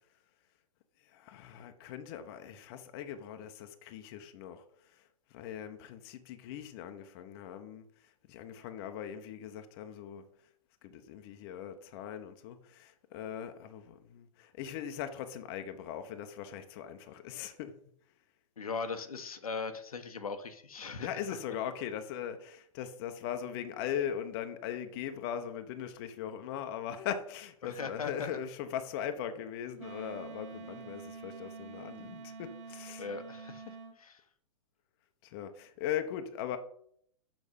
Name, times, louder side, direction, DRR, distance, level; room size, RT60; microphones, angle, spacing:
voice 1, 1.1-4.6 5.3-7.8 8.3-10.2 10.8-17.7 21.0-33.1 35.2-36.6, left 9 dB, 45° left, 0.9 m, -40 dB
voice 2, 18.6-21.4 27.6-28.4 33.0-34.2, left 4 dB, 85° left, 1.0 m, -39 dB
Wind instrument woodwind instrument, 29.8-33.9, right 4 dB, 65° right, 1.6 m, -46 dB
6.5 x 5.9 x 5.2 m
hypercardioid pair, 120°, 18 cm